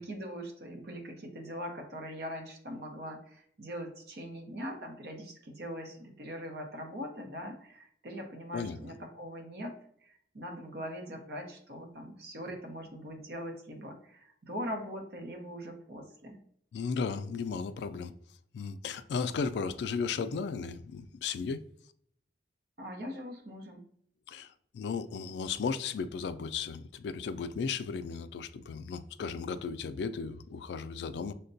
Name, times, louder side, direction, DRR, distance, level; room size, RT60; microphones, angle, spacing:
voice 1, 0.0-16.4 22.8-23.8, equal, 65° right, 0.8 m, -41 dB
voice 2, 16.7-18.1 18.5-21.6 24.3-31.3, left 5 dB, 70° left, 0.3 m, -35 dB
6.5 x 2.2 x 2.6 m
head